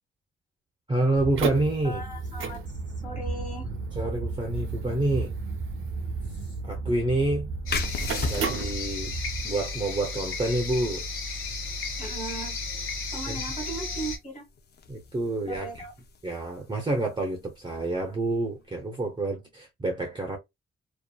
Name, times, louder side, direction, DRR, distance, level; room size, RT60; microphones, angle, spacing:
voice 1, 0.9-2.0 4.0-5.3 6.6-7.5 8.3-9.2 9.4-11.0 13.3-13.4 14.9-15.9 16.2-20.4, right 2 dB, 20° right, 0.6 m, -28 dB
sound 1, 1.2-9.4, right 4 dB, 75° right, 0.6 m, -32 dB
voice 2, 1.8-3.7 12.0-12.6 13.1-14.4 15.4-15.9, right 2 dB, 35° left, 1.3 m, -38 dB
sound 2, 7.7-14.2, left 3 dB, 90° left, 1.0 m, -34 dB
sound 3, 7.7-19.0, left 5 dB, 50° left, 0.5 m, -40 dB
2.6 x 2.4 x 2.2 m
cardioid pair, 80°, 21 cm